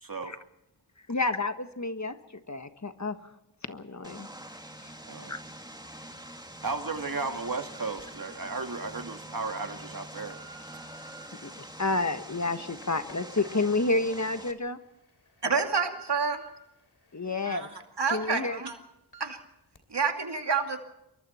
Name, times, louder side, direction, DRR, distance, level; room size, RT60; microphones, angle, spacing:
voice 1, 0.0-0.3 5.1-5.4 6.6-10.4, right 4 dB, 55° right, 6 dB, 2.1 m, -34 dB
voice 2, 1.1-2.2 2.5-3.2 3.7-4.3 4.8-4.9 5.3-5.4 11.4-14.8 17.1-17.7 18.1-18.6, left 3 dB, 45° left, 9 dB, 1.5 m, -30 dB
Vehicle, 4.0-14.5, right 1 dB, 10° right, 2.1 m, -45 dB
sound 1, 8.0-8.1 8.7-9.0 9.6-11.3 11.9-14.2 14.7-14.8 15.2-16.5 16.9-17.8 18.1-18.3 18.6-18.7 19.1-19.4 19.7-19.8, right 3 dB, 70° left, 3.2 m, -51 dB
voice 3, 15.4-16.4 17.4-17.7 18.0-18.8 19.2-19.4 19.9-20.8, right 5 dB, 85° right, 4 dB, 2.5 m, -28 dB
27.0 x 23.0 x 4.4 m, 0.85 s
wide cardioid pair, 50°, 40 cm